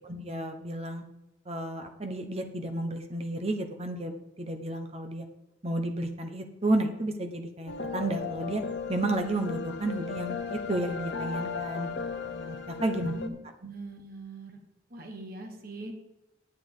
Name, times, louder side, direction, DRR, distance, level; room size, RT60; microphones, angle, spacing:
voice 1, 0.0-1.0 1.5-5.3 5.6-8.6 8.9-11.9 12.2-13.1, right 1 dB, 30° right, 6 dB, 1.0 m, -32 dB
sound 1, 7.7-13.3, left 5 dB, 60° left, 0.8 m, -36 dB
voice 2, 13.1-14.6 14.9-15.9, right 2 dB, 45° right, 3 dB, 1.3 m, -42 dB
9.5 x 7.6 x 5.0 m, 0.95 s
head